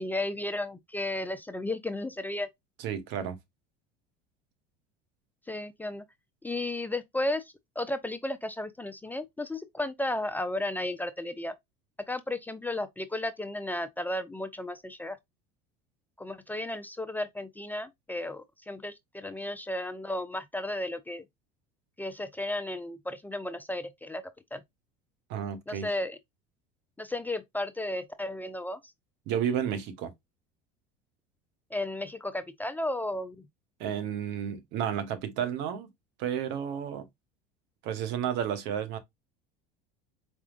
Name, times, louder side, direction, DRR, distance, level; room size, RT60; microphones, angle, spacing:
voice 1, 0.0-2.5 5.5-6.0 6.4-11.5 12.1-15.2 16.2-21.2 22.0-24.2 24.5-24.6 25.7-26.2 27.0-28.8 31.7-33.4, left 1 dB, 10° left, 0.4 m, -34 dB
voice 2, 2.8-3.4 25.3-25.9 29.3-30.1 33.8-35.9 36.2-37.1 37.8-39.0, right 9 dB, 65° right, 1.1 m, -31 dB
4.5 x 3.6 x 2.4 m
supercardioid pair, 105°, 20 cm